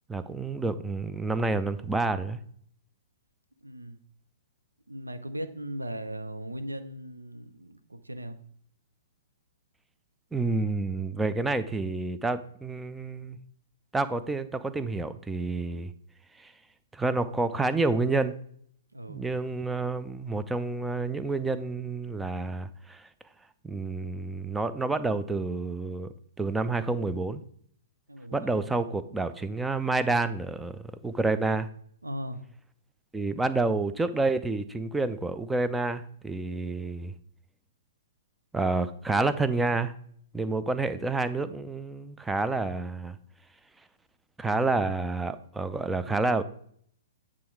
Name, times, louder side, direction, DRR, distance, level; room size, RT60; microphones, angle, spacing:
voice 1, 0.1-2.4 10.3-13.4 13.9-15.9 16.4-16.5 16.9-18.4 19.1-23.1 23.6-27.4 28.3-31.7 33.1-37.1 38.5-39.9 40.3-43.2 44.4-46.4, right 3 dB, 5° right, 12 dB, 0.4 m, -29 dB
voice 2, 3.6-4.0 4.9-8.4 18.9-19.2 28.1-28.5 32.0-32.4, equal, 85° right, 9 dB, 0.7 m, -38 dB
8.6 x 3.7 x 4.6 m, 0.63 s
figure-of-eight pair, 115°, 0 cm